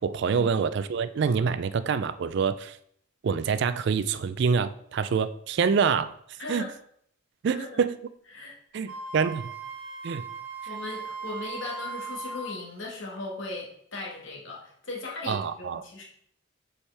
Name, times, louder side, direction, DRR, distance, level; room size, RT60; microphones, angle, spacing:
voice 1, 0.0-2.8 3.2-6.1 6.5-6.6 7.4-8.0 8.7-9.5 10.0-10.2 15.3-15.8, right 6 dB, 55° right, 13 dB, 0.3 m, -26 dB
voice 2, 6.4-6.7 7.5-7.8 8.3-8.5 10.7-16.0, left 2 dB, 60° left, -2 dB, 1.7 m, -38 dB
Wind instrument woodwind instrument, 8.9-12.6, right 4 dB, 85° right, 1.1 m, -38 dB
7.0 x 4.8 x 3.4 m, 0.66 s
head